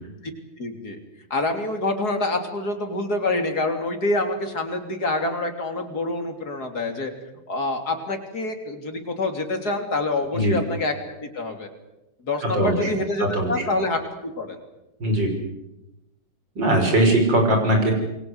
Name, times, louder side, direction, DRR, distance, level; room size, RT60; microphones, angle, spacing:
voice 1, 0.6-1.0 1.3-7.1 7.5-11.7 12.2-14.6, left 2 dB, 45° left, 5 dB, 3.8 m, -26 dB
voice 2, 12.5-12.9 13.2-13.5 15.0-15.3 16.6-17.9, right 1 dB, 55° right, 3 dB, 6.6 m, -20 dB
28.0 x 22.5 x 8.1 m, 0.96 s
omnidirectional pair, 2.3 m